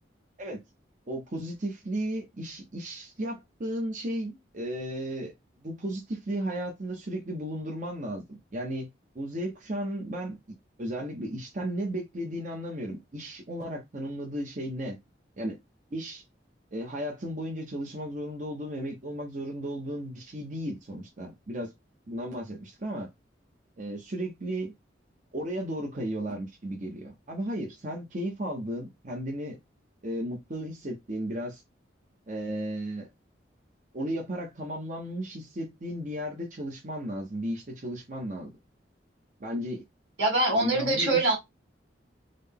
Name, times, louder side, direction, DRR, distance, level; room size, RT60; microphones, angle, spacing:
voice 1, 1.1-5.3 5.6-8.9 9.1-10.4 10.8-15.0 15.4-15.6 15.9-16.2 16.7-21.7 22.1-23.1 23.8-24.7 25.3-29.6 30.0-31.6 32.3-33.1 33.9-38.5 39.4-39.8 40.5-41.3, right 1 dB, 45° right, 0.8 m, -34 dB
voice 2, 40.2-41.4, right 2 dB, 85° right, 2.0 m, -24 dB
3.8 x 2.1 x 3.5 m
head